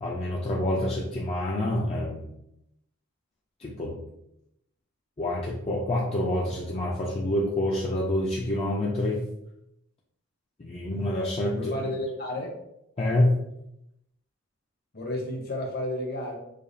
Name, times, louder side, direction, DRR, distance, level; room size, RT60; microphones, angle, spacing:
voice 1, 0.0-2.3 3.6-4.0 5.2-9.2 10.6-11.7 13.0-13.4, left 1 dB, 25° left, -3 dB, 0.4 m, -27 dB
voice 2, 11.5-12.5 14.9-16.4, left 1 dB, 45° left, 1 dB, 0.9 m, -32 dB
4.9 x 2.3 x 2.6 m, 0.81 s
head